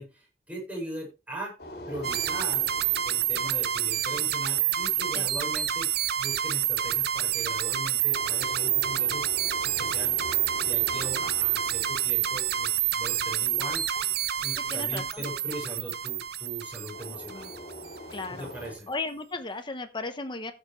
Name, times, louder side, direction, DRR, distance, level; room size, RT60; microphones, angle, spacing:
voice 1, 0.0-1.5 1.9-2.7 3.0-5.9 6.2-9.3 9.6-10.2 10.6-13.8 14.4-17.5 18.3-18.9, right 1 dB, 10° right, -4 dB, 6.8 m, -39 dB
sound 1, 1.6-4.7 8.1-13.4 16.9-18.7, equal, 60° left, 2.8 m, -44 dB
sound 2, 2.0-17.9, right 10 dB, 60° right, 0.7 m, -28 dB
voice 2, 14.7-15.2 18.1-18.5 18.9-20.5, left 3 dB, 25° left, 7 dB, 1.0 m, -35 dB
15.5 x 6.9 x 3.3 m, 0.29 s
head